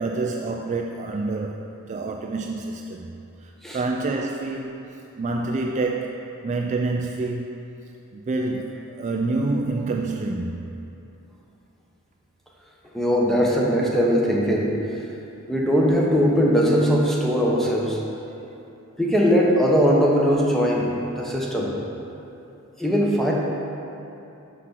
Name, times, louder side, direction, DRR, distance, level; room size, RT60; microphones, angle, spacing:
voice 1, 0.0-1.6 1.9-3.1 3.4-4.9 5.2-7.5 8.1-10.6, right 3 dB, 30° right, 1 dB, 0.3 m, -27 dB
voice 2, 12.9-14.7 15.5-18.0 19.0-20.9 21.2-21.7 22.8-23.3, equal, ahead, -4 dB, 1.0 m, -20 dB
6.0 x 5.8 x 6.0 m, 2.8 s
head